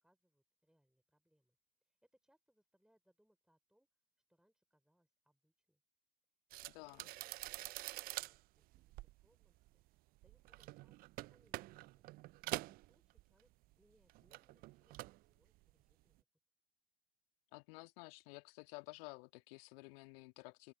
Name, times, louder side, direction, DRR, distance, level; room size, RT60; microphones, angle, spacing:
voice 1, 0.0-3.9 4.3-5.8 6.7-9.6 9.9-11.0 11.3-12.0 12.5-13.5 13.8-16.3, equal, ahead, 4.3 m, -77 dB
sound 1, 6.5-13.7 14.0-15.3 15.6-15.9, right 20 dB, 25° right, 0.4 m, -47 dB
voice 2, 6.7-7.1 17.5-20.7, left 29 dB, 50° left, 2.0 m, -53 dB
open air
figure-of-eight pair, 80°, 37 cm